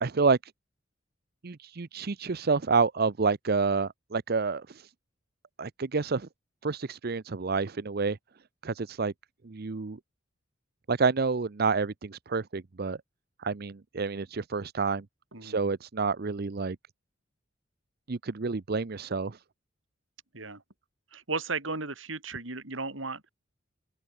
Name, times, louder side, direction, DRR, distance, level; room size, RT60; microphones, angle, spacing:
voice 1, 0.0-0.4 1.4-4.9 5.6-6.3 6.6-8.2 8.6-9.1 9.4-10.0 10.9-13.0 13.4-15.0 15.4-16.8 18.1-19.4, right 4 dB, 50° right, 0.7 m, -28 dB
voice 2, 21.1-23.3, right 3 dB, 80° right, 4.9 m, -35 dB
open air
head